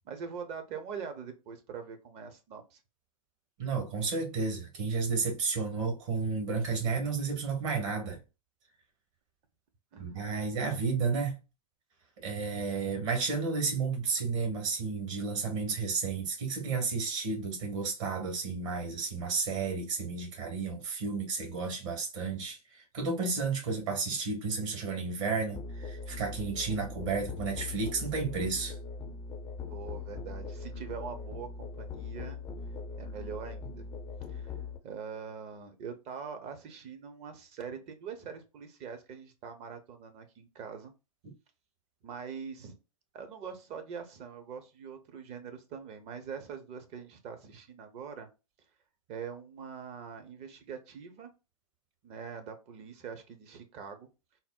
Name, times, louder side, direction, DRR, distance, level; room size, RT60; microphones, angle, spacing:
voice 1, 0.0-2.8 9.9-10.0 29.7-32.4 33.0-33.9 34.3-34.6 34.8-40.9 42.0-42.8 43.1-48.3 49.1-51.3 52.0-54.1, right 6 dB, 30° right, 0.8 m, -43 dB
voice 2, 3.6-8.2 10.0-11.3 12.2-28.8, right 4 dB, 55° right, 1.5 m, -32 dB
Musical instrument, 25.5-34.8, left 4 dB, 20° left, 0.5 m, -41 dB
4.1 x 2.0 x 2.3 m
hypercardioid pair, 115°, 20 cm